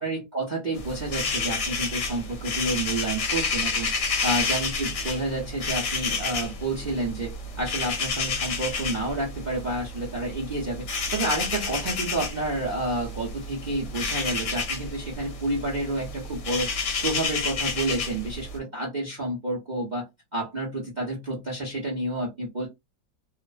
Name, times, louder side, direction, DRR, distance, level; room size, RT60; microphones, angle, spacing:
voice 1, 0.0-3.9 4.2-10.9 11.1-16.7 17.0-20.0 20.3-22.7, right 1 dB, 55° right, 0.5 m, -29 dB
sound 1, 0.8-18.6, left 4 dB, 60° left, 1.0 m, -30 dB
3.1 x 2.0 x 2.4 m
omnidirectional pair, 2.0 m